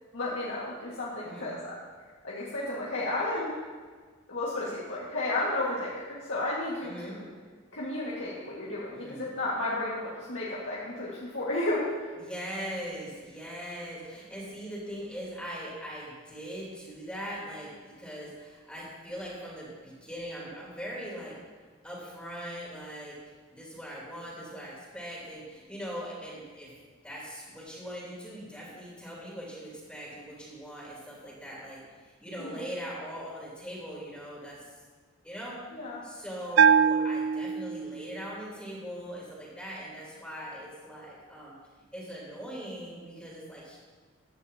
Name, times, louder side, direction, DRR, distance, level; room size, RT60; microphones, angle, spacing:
voice 1, 0.1-1.7 2.2-3.5 4.3-7.2 7.7-11.8 32.4-32.5 35.7-36.0, left 2 dB, 70° left, -7 dB, 1.9 m, -32 dB
voice 2, 1.2-1.5 6.8-7.2 8.9-9.2 12.2-21.4 21.8-23.2 23.5-26.7 27.0-34.8 35.2-35.7 36.0-41.5 41.9-43.8, equal, 5° left, -5 dB, 3.5 m, -41 dB
Bell, 36.6-38.2, right 7 dB, 65° right, 0.4 m, -23 dB
16.0 x 11.5 x 2.9 m, 1.5 s
head